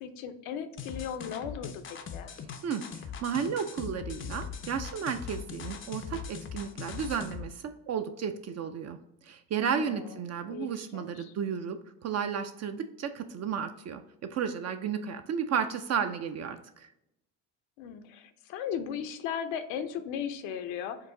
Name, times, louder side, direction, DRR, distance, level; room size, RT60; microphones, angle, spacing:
voice 1, 0.0-1.8 2.1-2.4 9.6-10.2 10.5-11.3 17.8-21.0, left 8 dB, 70° left, 9 dB, 0.6 m, -37 dB
sound 1, 0.8-7.5, left 7 dB, 25° left, 0.4 m, -41 dB
voice 2, 3.2-9.0 9.3-14.0 14.3-16.9, right 7 dB, 35° right, 8 dB, 0.4 m, -33 dB
4.7 x 2.5 x 3.7 m, 0.84 s
hypercardioid pair, 65°, 48 cm